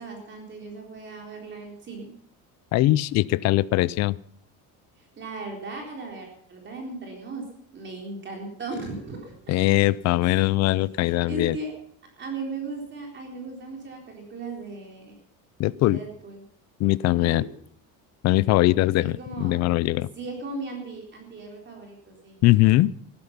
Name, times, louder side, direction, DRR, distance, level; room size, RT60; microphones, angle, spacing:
voice 1, 0.0-2.1 5.0-7.4 7.7-9.5 10.2-10.5 11.0-11.7 12.2-15.2 15.7-16.4 17.2-17.5 19.0-19.6 20.2-22.4, right 3 dB, 30° right, 1 dB, 3.9 m, -37 dB
voice 2, 2.7-4.2 9.5-11.6 15.6-16.0 16.8-17.4 18.2-20.1 22.4-22.9, left 17 dB, 45° left, 20 dB, 0.5 m, -21 dB
15.5 x 13.5 x 5.8 m, 0.63 s
cardioid pair, 155°, 37 cm